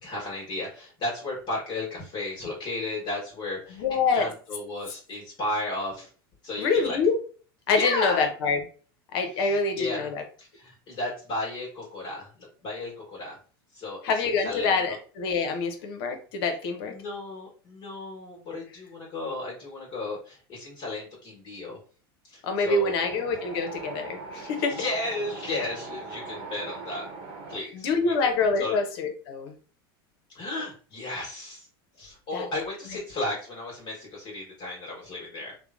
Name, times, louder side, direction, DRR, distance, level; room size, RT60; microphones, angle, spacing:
voice 1, 0.0-6.1 6.4-7.0 7.7-8.3 9.3-10.1 10.4-13.4 13.7-15.0 16.9-21.8 22.2-23.2 24.3-27.1 27.5-28.3 28.6-28.8 30.3-31.7 32.0-35.5, left 2 dB, 35° left, -4 dB, 1.3 m, -34 dB
voice 2, 3.7-4.3 6.6-7.2 7.7-8.6 9.1-10.2 14.0-16.9 22.4-24.8 27.7-29.5 32.3-32.4, left 4 dB, 70° left, 5 dB, 0.7 m, -26 dB
Wind, 23.0-27.6, right 3 dB, 50° right, 0.9 m, -40 dB
2.9 x 2.1 x 2.4 m, 0.39 s
hypercardioid pair, 110°, 13 cm